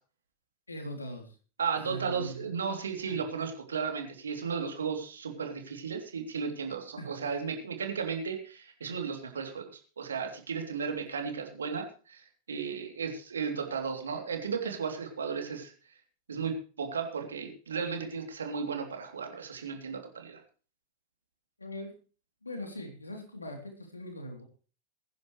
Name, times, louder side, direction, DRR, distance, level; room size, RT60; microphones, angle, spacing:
voice 1, 0.7-1.4 1.9-2.6 3.1-3.2 7.0-7.2 21.6-22.0 22.4-24.4, equal, 80° left, 4 dB, 3.4 m, -41 dB
voice 2, 1.6-15.9 16.3-20.4, right 6 dB, 70° right, 4 dB, 3.2 m, -35 dB
21.5 x 10.5 x 3.3 m, 0.37 s
figure-of-eight pair, 90°, 0 cm